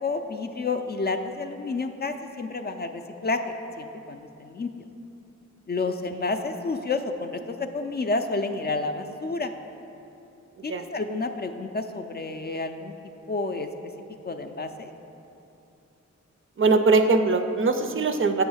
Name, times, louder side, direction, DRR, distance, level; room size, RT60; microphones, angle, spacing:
voice 1, 0.0-4.7 5.7-9.5 10.6-12.9 13.3-13.7 14.2-14.9, left 3 dB, 35° left, 6 dB, 0.4 m, -30 dB
voice 2, 16.6-18.4, right 3 dB, 45° right, 7 dB, 0.4 m, -21 dB
7.9 x 3.1 x 6.2 m, 2.8 s
wide cardioid pair, 70°, 29 cm